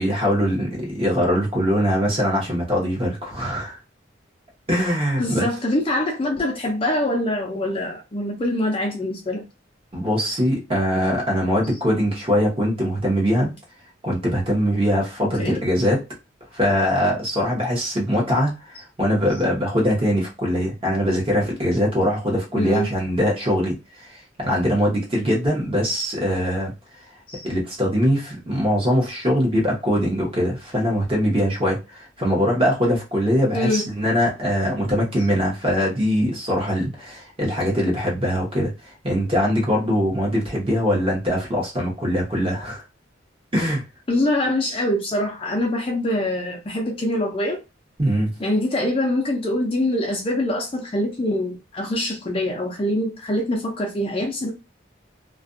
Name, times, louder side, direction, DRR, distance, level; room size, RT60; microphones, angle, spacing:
voice 1, 0.0-3.8 4.7-5.5 9.9-13.5 14.0-16.0 16.5-26.7 27.4-42.8 43.5-43.8 48.0-48.3, equal, 25° right, 0.9 m, -22 dB
voice 2, 5.2-9.4 15.2-15.6 22.5-22.9 27.3-27.5 33.5-33.9 44.1-47.6 48.4-54.5, left 1 dB, 25° left, 0.4 m, -24 dB
2.4 x 2.2 x 2.5 m
head